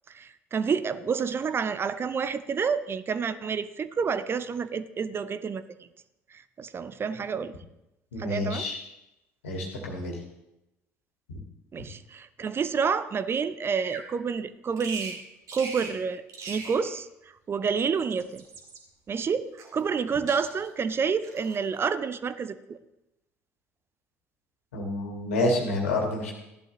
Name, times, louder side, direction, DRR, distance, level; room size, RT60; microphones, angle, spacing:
voice 1, 0.1-5.6 6.3-7.5 8.2-8.7 11.7-15.2 15.5-17.1 17.5-18.4 19.1-22.8, right 6 dB, 30° right, 14 dB, 0.6 m, -29 dB
voice 2, 8.1-8.8 9.4-10.1 24.7-26.3, left 2 dB, 75° left, 1 dB, 2.2 m, -28 dB
Bird vocalization bird call bird song, 13.7-14.1 14.8-15.2 15.5-16.0 16.3-16.8 17.8-18.8 19.6-20.0 20.3-20.7 21.2-21.6, right 4 dB, 50° right, 2.0 m, -40 dB
15.5 x 11.5 x 3.1 m, 0.91 s
figure-of-eight pair, 55°, 7 cm